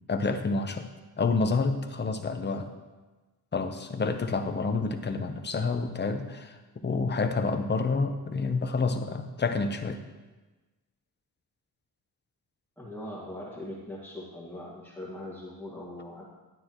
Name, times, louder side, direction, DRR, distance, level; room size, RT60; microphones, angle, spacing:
voice 1, 0.1-0.9 1.2-2.7 3.5-6.6 6.8-10.0, left 4 dB, 25° left, 7 dB, 0.8 m, -28 dB
voice 2, 12.8-16.2, left 1 dB, 5° left, -7 dB, 1.9 m, -41 dB
12.0 x 9.2 x 3.0 m, 1.2 s
cardioid pair, 110°, 38 cm